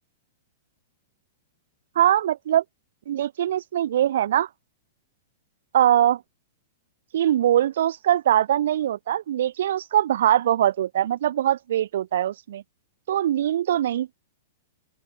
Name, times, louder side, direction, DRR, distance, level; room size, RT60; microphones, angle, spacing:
voice 1, 2.0-2.6 3.1-4.5 5.7-6.2 7.1-12.6 13.1-14.1, right 11 dB, 70° right, 3.9 m, -22 dB
open air
hypercardioid pair, 155°, 0 cm